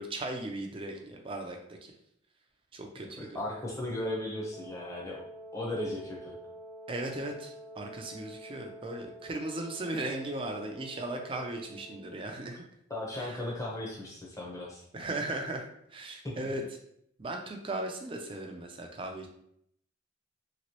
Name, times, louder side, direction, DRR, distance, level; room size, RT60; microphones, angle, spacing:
voice 1, 0.0-1.9 2.7-3.4 6.9-12.6 13.2-13.4 14.9-16.6 17.2-19.3, right 2 dB, 25° right, 2 dB, 0.4 m, -37 dB
voice 2, 3.2-5.2 5.5-6.4 12.9-14.8 16.2-16.4, left 1 dB, 15° left, -4 dB, 0.8 m, -36 dB
Wind instrument woodwind instrument, 4.5-12.4, right 1 dB, 60° left, 1.4 m, -48 dB
3.0 x 2.9 x 2.9 m, 0.72 s
head